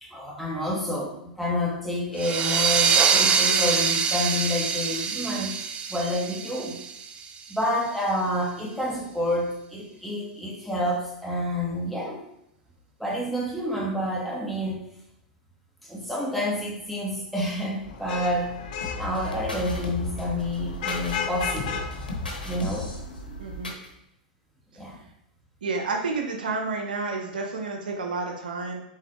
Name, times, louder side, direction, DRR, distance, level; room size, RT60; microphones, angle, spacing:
voice 1, 0.0-5.6 5.9-6.8 7.5-12.2 13.0-14.8 15.8-18.5 19.0-21.8 22.4-22.9 24.8-25.0, left 1 dB, ahead, -4 dB, 1.5 m, -29 dB
sound 1, 2.2-7.5, right 6 dB, 25° right, 0.5 m, -24 dB
Vehicle horn car horn honking / Traffic noise roadway noise, 17.8-23.1, left 5 dB, 60° left, 0.7 m, -35 dB
sound 2, 18.8-23.9, left 1 dB, 90° left, 0.9 m, -35 dB
voice 2, 23.4-23.7 25.6-28.8, right 3 dB, 75° right, 2 dB, 0.9 m, -30 dB
4.0 x 3.8 x 3.1 m, 0.78 s
hypercardioid pair, 100°, 5 cm